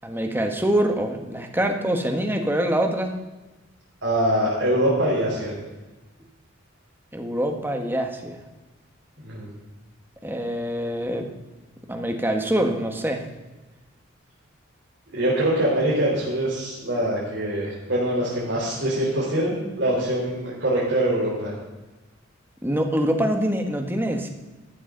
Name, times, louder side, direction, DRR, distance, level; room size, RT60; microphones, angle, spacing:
voice 1, 0.0-3.1 7.1-8.4 10.2-11.3 11.9-13.2 22.6-24.3, right 1 dB, 10° right, 4 dB, 1.3 m, -24 dB
voice 2, 4.0-5.5 9.2-9.5 15.1-21.5, right 1 dB, 65° right, -7 dB, 4.1 m, -23 dB
14.0 x 12.0 x 3.9 m, 1.1 s
head